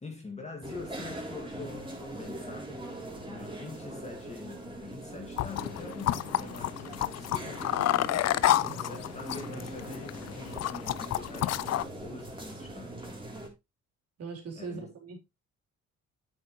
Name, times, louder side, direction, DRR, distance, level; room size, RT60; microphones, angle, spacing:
voice 1, 0.0-2.9 3.3-7.8 8.6-13.1 14.6-14.9, left 3 dB, 20° left, 2.3 m, -45 dB
sound 1, 0.6-13.5, right 1 dB, 15° right, 3.5 m, -42 dB
sound 2, 5.4-11.8, left 13 dB, 60° left, 0.5 m, -30 dB
voice 2, 8.4-8.8 14.2-15.2, right 4 dB, 55° right, 4.0 m, -41 dB
8.2 x 7.7 x 3.2 m
cardioid pair, 90°, 30 cm